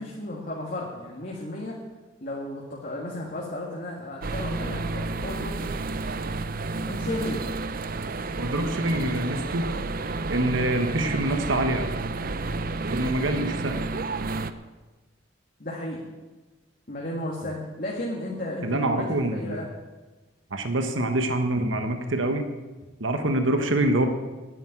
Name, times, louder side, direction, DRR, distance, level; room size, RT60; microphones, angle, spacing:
voice 1, 0.0-1.8 2.2-5.8 6.9-7.4 15.6-16.0 16.9-19.7, left 1 dB, 45° left, -3 dB, 1.8 m, -34 dB
sound 1, 4.2-14.5, right 3 dB, 45° right, 0.6 m, -31 dB
voice 2, 8.4-9.7 10.3-11.9 12.8-13.8 17.4-17.5 18.6-19.7 20.5-22.5 23.0-24.1, right 1 dB, 75° right, 6 dB, 1.3 m, -25 dB
10.0 x 9.2 x 8.7 m, 1.2 s
head